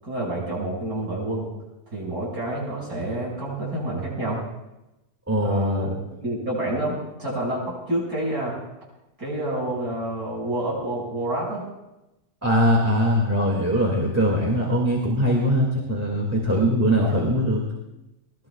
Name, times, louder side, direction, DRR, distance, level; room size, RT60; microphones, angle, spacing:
voice 1, 0.0-1.5 1.9-4.4 5.4-8.6 9.2-11.7 17.0-17.1, right 1 dB, 85° right, -4 dB, 6.8 m, -28 dB
voice 2, 5.3-5.9 12.4-17.6, equal, 10° right, -2 dB, 2.3 m, -21 dB
20.5 x 19.5 x 2.4 m, 0.94 s
omnidirectional pair, 1.6 m